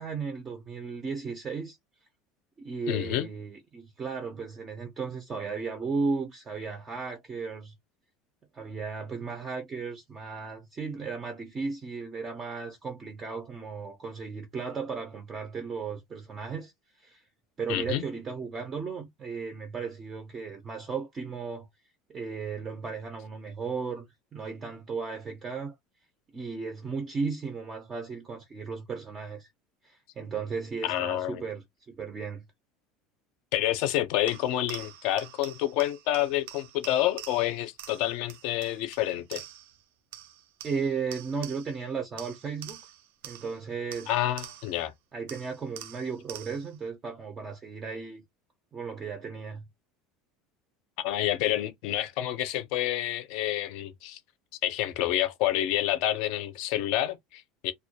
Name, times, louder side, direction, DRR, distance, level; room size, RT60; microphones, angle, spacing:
voice 1, 0.0-1.8 2.6-7.7 8.5-16.7 17.0-17.2 17.6-21.7 22.1-24.1 24.3-25.7 26.3-29.5 29.8-32.4 40.6-42.8 43.2-44.1 45.1-48.2 48.7-49.6, right 5 dB, 20° right, 0.4 m, -35 dB
voice 2, 2.9-3.3 17.7-18.0 30.8-31.4 33.5-39.4 44.1-44.9 51.0-54.2 54.6-57.7, left 13 dB, 55° left, 0.4 m, -28 dB
sound 1, 34.3-39.8 40.1-41.9 42.2-44.9 45.3-46.8, right 12 dB, 80° right, 0.4 m, -46 dB
2.1 x 2.1 x 2.7 m
cardioid pair, 175°, 0 cm